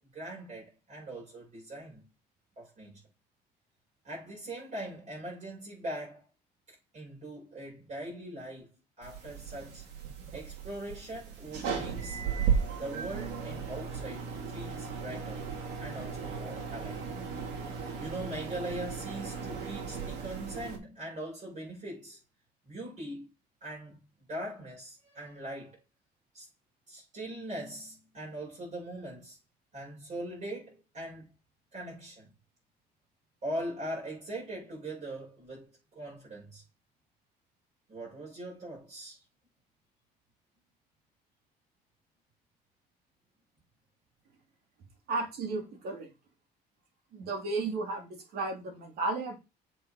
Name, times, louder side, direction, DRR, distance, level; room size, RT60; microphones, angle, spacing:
voice 1, 0.1-2.0 2.6-3.0 4.0-6.3 6.9-8.7 9.0-9.8 10.3-12.2 12.8-15.4 15.8-17.1 18.0-22.2 22.7-23.3 23.6-24.0 24.3-25.8 26.3-26.5 26.9-29.4 29.7-31.3 31.7-32.3 33.4-36.6 37.9-39.2, right 1 dB, 45° right, 5.3 m, -41 dB
sound 1, 9.0-20.8, right 6 dB, 85° right, 2.2 m, -36 dB
voice 2, 45.1-46.1 47.1-49.4, right 3 dB, 65° right, 3.0 m, -34 dB
7.6 x 4.7 x 4.9 m
cardioid pair, 110°, 17 cm